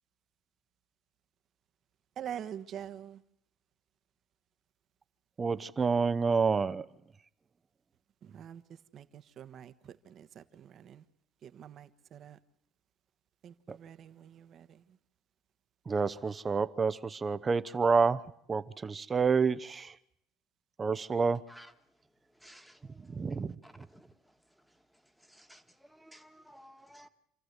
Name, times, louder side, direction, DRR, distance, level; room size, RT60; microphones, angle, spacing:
voice 1, 2.2-3.2 8.3-8.6 8.9-9.0 9.4-9.7 10.2-10.4 10.8-11.0 11.4-12.4 13.4-13.5 13.8-14.6, right 9 dB, 50° right, 1.3 m, -44 dB
voice 2, 5.4-6.9 13.7-13.8 15.8-20.0 20.8-21.4 22.8-23.9, right 5 dB, 25° right, 0.9 m, -29 dB
voice 3, 22.4-22.8 24.0-24.1 25.3-25.6 25.9-27.1, equal, ahead, 1.6 m, -55 dB
28.5 x 14.0 x 8.2 m
supercardioid pair, 105°, 0 cm